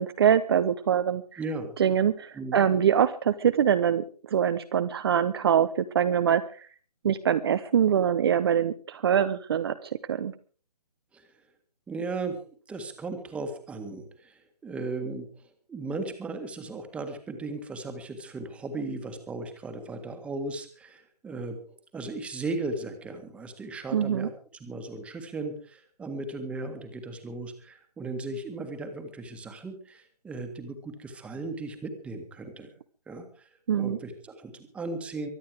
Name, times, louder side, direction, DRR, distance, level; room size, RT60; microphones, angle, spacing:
voice 1, 0.0-1.4 1.8-6.7 7.0-10.3 23.9-24.3 33.7-34.0, right 8 dB, 40° right, 11 dB, 0.8 m, -24 dB
voice 2, 1.4-1.7 2.4-2.6 11.1-11.3 11.9-12.4 12.7-15.4 15.7-24.3 24.6-32.7 33.1-33.5 33.8-35.3, right 3 dB, 5° right, 7 dB, 1.7 m, -36 dB
23.5 x 9.5 x 4.9 m, 0.40 s
figure-of-eight pair, 150°, 21 cm